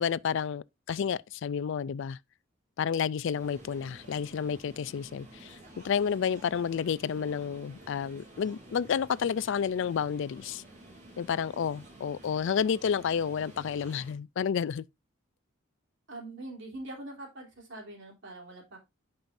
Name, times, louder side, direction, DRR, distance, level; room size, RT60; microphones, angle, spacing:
voice 1, 0.0-2.2 2.8-10.6 11.2-14.8, left 7 dB, 60° left, 0.3 m, -30 dB
sound 1, 3.3-14.1, right 1 dB, 35° right, 2.8 m, -51 dB
voice 2, 16.1-18.8, right 2 dB, 60° right, 3.2 m, -43 dB
10.5 x 5.5 x 2.6 m
head